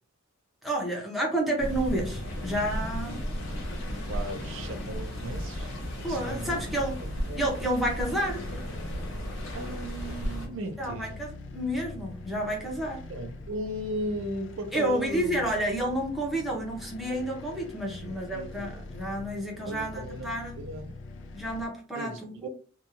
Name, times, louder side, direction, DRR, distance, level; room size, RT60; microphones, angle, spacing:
voice 1, 0.6-3.2 6.0-7.0 7.4-8.4 10.8-13.1 14.7-20.6 21.3-22.5, right 1 dB, ahead, 0.7 m, -30 dB
sound 1, 1.6-10.5, equal, 80° left, 1.1 m, -35 dB
sound 2, 1.7-21.7, left 3 dB, 60° left, 0.4 m, -44 dB
voice 2, 3.7-5.7 6.1-6.7 7.0-7.4 9.5-11.2 13.1-15.4 17.9-18.8 19.7-20.3 20.6-21.0 21.9-22.5, right 1 dB, 65° right, 0.5 m, -37 dB
2.8 x 2.3 x 2.5 m
head